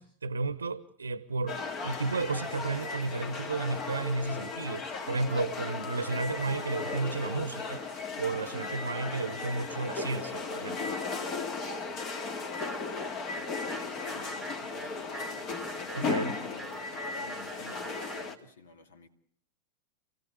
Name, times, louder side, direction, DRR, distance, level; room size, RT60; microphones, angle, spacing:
voice 1, 0.0-10.9 15.9-16.4, right 3 dB, 75° right, 1.0 m, -33 dB
sound 1, 1.5-18.4, left 4 dB, 35° left, 2.2 m, -36 dB
sound 2, 12.5-18.4, right 4 dB, 10° right, 1.0 m, -47 dB
voice 2, 13.7-19.1, left 4 dB, 65° left, 2.5 m, -52 dB
29.5 x 16.5 x 8.5 m
figure-of-eight pair, 90°, 0 cm